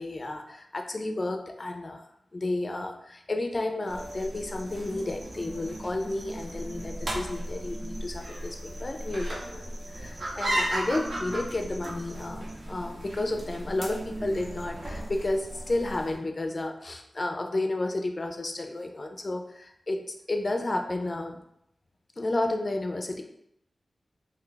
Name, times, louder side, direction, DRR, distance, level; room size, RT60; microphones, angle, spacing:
voice 1, 0.0-2.0 2.3-21.4 22.2-23.2, left 2 dB, 35° left, 4 dB, 0.4 m, -32 dB
sound 1, 3.9-16.2, right 1 dB, 60° right, 0.8 m, -36 dB
3.0 x 2.3 x 3.8 m, 0.76 s
wide cardioid pair, 110°, 0 cm